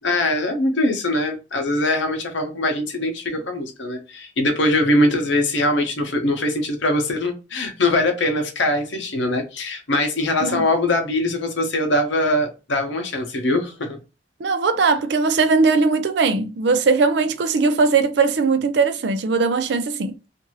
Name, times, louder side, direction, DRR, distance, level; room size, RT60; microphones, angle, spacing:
voice 1, 0.0-14.0, left 1 dB, 70° left, 0.8 m, -22 dB
voice 2, 14.4-20.1, right 4 dB, 60° right, 0.4 m, -19 dB
2.6 x 2.6 x 2.9 m
head